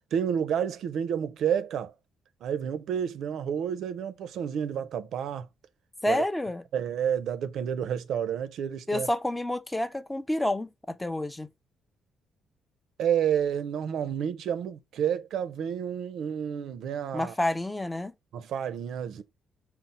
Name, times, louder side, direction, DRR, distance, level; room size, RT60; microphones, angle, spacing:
voice 1, 0.1-1.9 2.4-5.5 6.0-6.2 6.7-9.1 13.0-17.3 18.3-19.2, right 8 dB, 75° right, 0.4 m, -30 dB
voice 2, 6.0-6.6 8.9-11.5 17.1-18.1, left 1 dB, 10° left, 0.4 m, -29 dB
4.1 x 2.0 x 4.0 m
cardioid pair, 90°, 0 cm